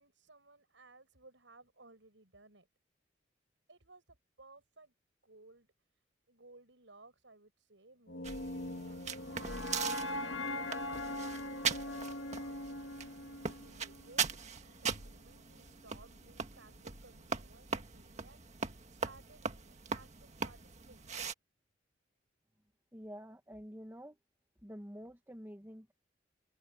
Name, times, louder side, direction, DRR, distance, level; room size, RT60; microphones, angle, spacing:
voice 1, 0.0-2.7 3.7-4.9 5.2-5.7 6.3-9.0 11.0-14.3 14.8-18.4 18.9-21.2, right 3 dB, 85° right, 6.3 m, -60 dB
sound 1, 8.1-14.2, left 1 dB, 75° left, 2.4 m, -40 dB
sound 2, 8.2-21.3, right 5 dB, 40° right, 1.7 m, -40 dB
voice 2, 22.9-24.2 24.6-25.9, equal, 15° right, 1.9 m, -48 dB
open air
head